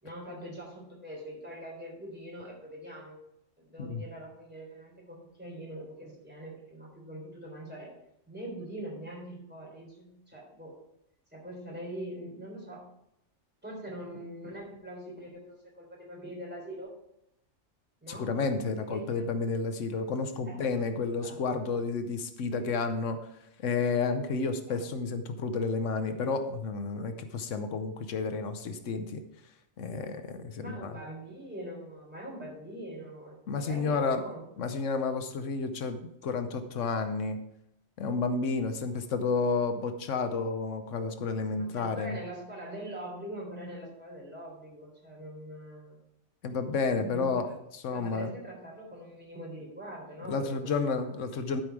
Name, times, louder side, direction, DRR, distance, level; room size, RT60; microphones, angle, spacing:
voice 1, 0.0-3.2 3.6-7.9 8.3-10.7 11.3-12.8 13.6-16.9 18.0-18.3 18.8-19.3 20.5-20.6 21.2-21.4 24.7-24.9 30.6-34.4 34.7-34.9 41.6-46.0 47.0-47.6 47.9-51.0, right 1 dB, 10° right, -3 dB, 3.7 m, -43 dB
voice 2, 18.1-23.2 23.6-29.2 29.8-30.9 33.5-34.2 34.6-37.4 38.0-42.2 46.4-47.5 47.8-48.3 50.2-51.6, left 4 dB, 85° left, 8 dB, 1.2 m, -31 dB
12.0 x 5.5 x 4.7 m, 0.79 s
omnidirectional pair, 1.2 m